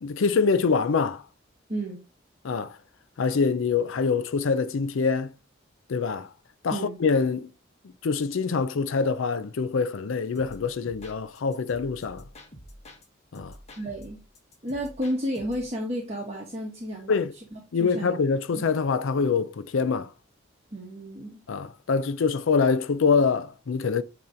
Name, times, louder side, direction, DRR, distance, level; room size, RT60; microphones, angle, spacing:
voice 1, 0.0-1.2 2.4-2.7 3.2-5.3 5.9-6.3 6.6-7.5 8.0-12.2 13.3-13.5 17.1-17.3 17.7-20.1 21.5-24.0, left 5 dB, 80° left, 0.5 m, -25 dB
voice 2, 1.7-2.0 6.7-7.0 13.8-14.2 14.6-18.1 18.5-18.6 20.7-21.4, equal, 30° right, 1.2 m, -32 dB
sound 1, 10.3-13.1 13.3-15.7, equal, 35° left, 1.2 m, -47 dB
8.6 x 3.0 x 3.8 m
head